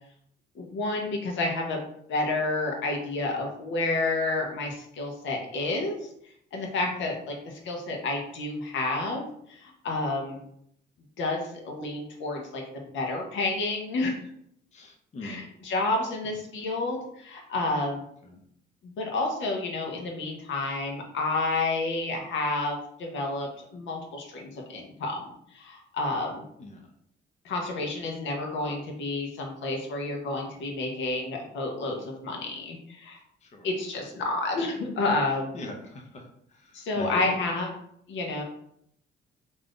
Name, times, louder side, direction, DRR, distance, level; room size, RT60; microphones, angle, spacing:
voice 1, 0.6-1.8 2.1-6.1 6.5-9.2 9.5-10.4 11.2-14.1 15.2-18.0 18.8-25.3 25.5-26.4 27.4-33.2 33.6-35.5 36.7-37.7 38.1-38.4, left 2 dB, 75° left, 1 dB, 0.8 m, -30 dB
voice 2, 14.7-15.4 18.2-18.4 26.6-26.9 33.4-33.7 35.5-36.2 36.5-37.4, left 2 dB, 35° left, 2 dB, 0.6 m, -40 dB
2.5 x 2.3 x 3.5 m, 0.71 s
cardioid pair, 90°, 20 cm